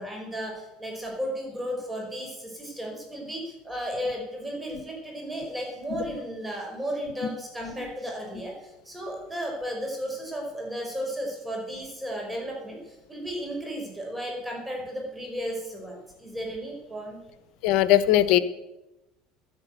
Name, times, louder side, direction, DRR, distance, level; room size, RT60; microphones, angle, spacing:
voice 1, 0.0-17.2, equal, 10° right, 0 dB, 5.3 m, -34 dB
voice 2, 17.6-18.4, left 13 dB, 65° left, 14 dB, 1.1 m, -21 dB
12.5 x 9.6 x 7.9 m, 0.95 s
supercardioid pair, 100°, 0 cm